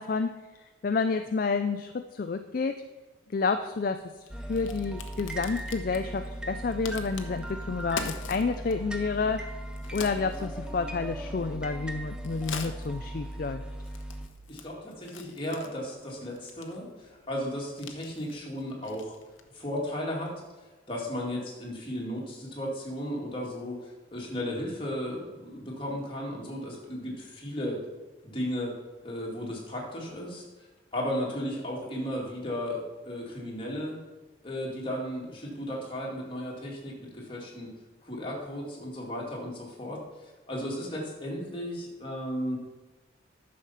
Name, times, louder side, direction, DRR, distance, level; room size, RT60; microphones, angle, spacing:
voice 1, 0.0-2.8 3.3-9.5 9.9-13.6, left 4 dB, 45° left, 8 dB, 0.4 m, -30 dB
Crack, 3.5-19.6, left 5 dB, 75° left, 0.9 m, -46 dB
sound 1, 4.3-14.3, right 1 dB, 5° right, 0.6 m, -38 dB
voice 2, 14.5-19.1 19.5-20.3 20.9-27.8 28.2-28.7 29.0-34.0 34.4-37.7 38.0-42.6, equal, 25° left, -2 dB, 2.3 m, -35 dB
10.0 x 6.5 x 5.6 m, 1.2 s
head